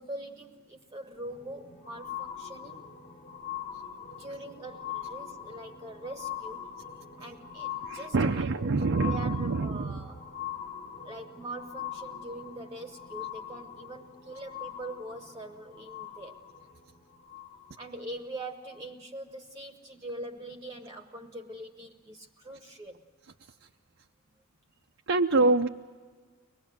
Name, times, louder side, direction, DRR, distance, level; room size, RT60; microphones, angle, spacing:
voice 1, 0.0-2.9 4.2-6.7 7.2-10.2 11.0-16.4 17.8-23.0, right 1 dB, 20° right, 4 dB, 1.0 m, -43 dB
sound 1, 1.1-18.0 18.7-18.8, left 9 dB, 35° left, 1.9 m, -42 dB
voice 2, 7.8-10.1 23.6-23.7 25.1-25.7, right 3 dB, 60° right, 4 dB, 0.6 m, -26 dB
24.0 x 20.0 x 7.7 m, 1.5 s
head